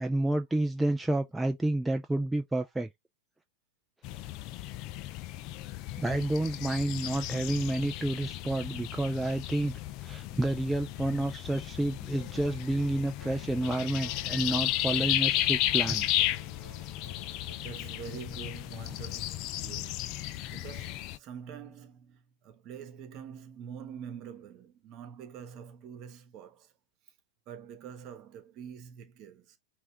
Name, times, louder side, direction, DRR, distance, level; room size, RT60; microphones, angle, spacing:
voice 1, 0.0-2.9 6.0-16.1, right 1 dB, 5° right, 0.5 m, -30 dB
sound 1, 4.0-21.2, left 14 dB, 45° left, 0.5 m, -34 dB
sound 2, 12.1-17.6, left 4 dB, 15° left, 2.1 m, -50 dB
voice 2, 17.3-26.7 27.5-29.6, right 8 dB, 45° right, 1.2 m, -46 dB
5.5 x 2.6 x 3.3 m
hypercardioid pair, 105°, 0 cm